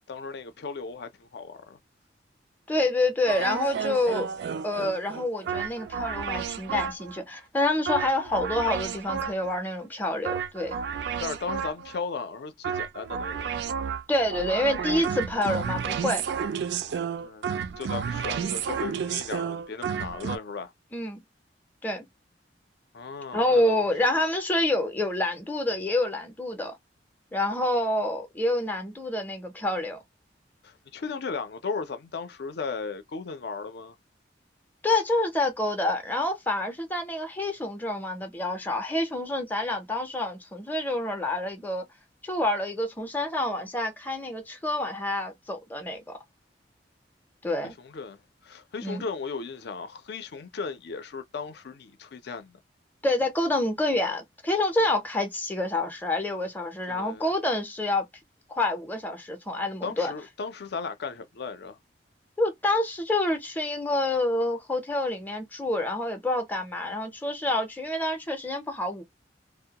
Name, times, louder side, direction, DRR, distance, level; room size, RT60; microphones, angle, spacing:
voice 1, 0.1-1.8 11.2-13.5 17.2-17.5 17.8-20.7 22.9-24.2 30.6-33.9 47.6-52.6 56.9-57.3 59.8-61.8, left 4 dB, 65° left, 0.5 m, -36 dB
voice 2, 2.7-4.3 4.6-10.8 14.1-16.2 20.9-21.2 21.8-22.1 23.3-26.8 27.3-30.0 34.8-41.9 42.2-46.0 47.4-47.7 48.8-49.1 53.0-58.1 58.5-60.1 62.4-69.0, left 1 dB, 10° left, 0.5 m, -27 dB
sound 1, 3.3-7.2 7.9-9.6 10.2-12.0 12.6-20.4, right 7 dB, 65° right, 0.3 m, -31 dB
2.2 x 2.0 x 2.8 m
head